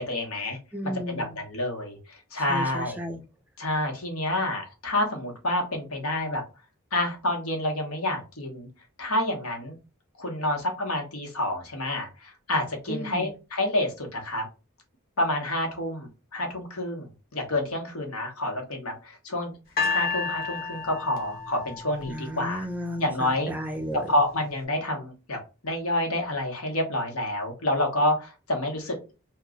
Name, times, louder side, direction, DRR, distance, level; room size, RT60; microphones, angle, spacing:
voice 1, 0.0-0.6 1.1-3.0 3.6-6.4 6.9-8.7 9.0-9.8 10.2-14.4 15.2-19.5 19.9-22.7 23.0-23.5 24.1-29.1, left 1 dB, 90° left, 1.1 m, -28 dB
voice 2, 0.7-1.4 2.5-3.2 12.9-13.3 22.1-24.0, equal, 10° right, 0.3 m, -34 dB
sound 1, 19.8-22.9 23.7-23.8, left 4 dB, 45° left, 0.9 m, -31 dB
2.9 x 2.3 x 3.7 m
head